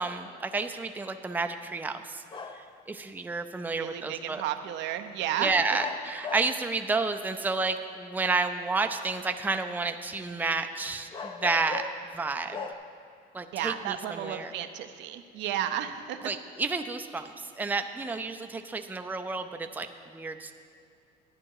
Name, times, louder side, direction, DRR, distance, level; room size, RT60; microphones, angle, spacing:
voice 1, 0.0-2.2 2.5-4.4 5.4-11.8 12.1-12.7 13.3-14.5 16.2-20.5, right 3 dB, 10° right, 6 dB, 0.5 m, -31 dB
sound 1, 2.3-2.8 4.6-4.7 5.8-6.7 7.3-7.9 10.5-10.6 11.1-12.1 12.5-12.7, left 5 dB, 25° left, 0.7 m, -38 dB
voice 2, 3.8-5.8 13.5-16.3, right 11 dB, 75° right, 8 dB, 0.7 m, -33 dB
11.5 x 9.7 x 4.8 m, 2.4 s
cardioid pair, 105°, 19 cm